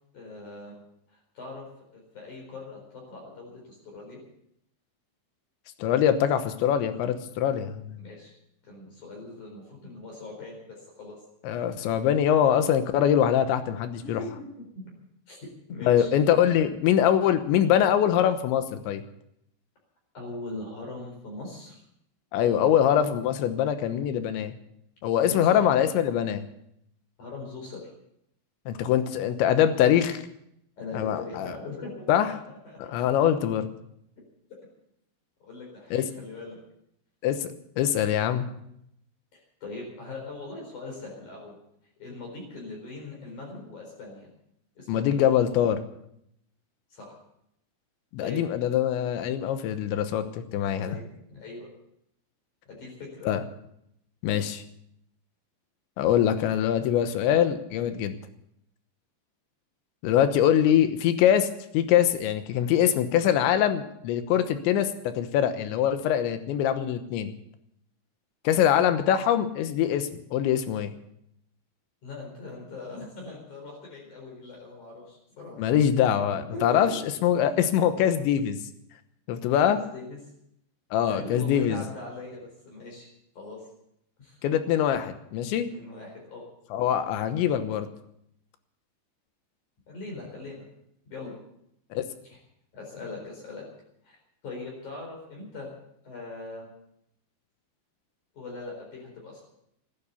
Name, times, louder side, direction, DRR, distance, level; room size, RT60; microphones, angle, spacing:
voice 1, 0.1-0.8 1.4-1.7 1.9-4.2 8.0-8.3 8.6-10.6 11.0-11.2 11.5-11.6 14.0-14.5 15.3-15.4 15.7-16.1 20.1-21.8 22.4-22.7 25.2-25.6 27.2-27.8 30.8-33.1 35.4-36.6 39.6-41.5 42.0-44.3 44.8-45.2 46.9-47.2 48.2-48.4 50.8-51.7 52.7-53.3 72.0-75.7 76.5-77.0 79.7-80.2 81.1-83.1 83.4-83.6 84.2-84.4 85.7-86.4 89.9-90.6 91.1-91.3 92.3-92.4 92.7-93.6 94.0-94.2 94.4-95.7 96.0-96.7 98.4-99.4, left 3 dB, 45° left, -1 dB, 5.4 m, -40 dB
voice 2, 5.8-8.0 11.4-14.2 15.8-19.0 22.3-24.5 25.0-26.4 28.7-30.2 30.9-31.5 32.1-32.3 32.8-33.7 35.9-36.1 37.2-37.5 37.8-38.5 44.9-45.8 48.1-50.3 50.5-51.0 53.3-53.4 54.2-54.6 56.0-58.2 60.0-61.5 61.7-64.9 65.2-67.3 68.5-70.9 75.6-76.9 77.2-78.6 79.3-79.8 80.9-81.8 84.4-85.7 86.7-87.9 91.9-92.1, left 10 dB, 80° left, 10 dB, 3.4 m, -23 dB
15.5 x 12.0 x 7.0 m, 0.76 s
omnidirectional pair, 5.3 m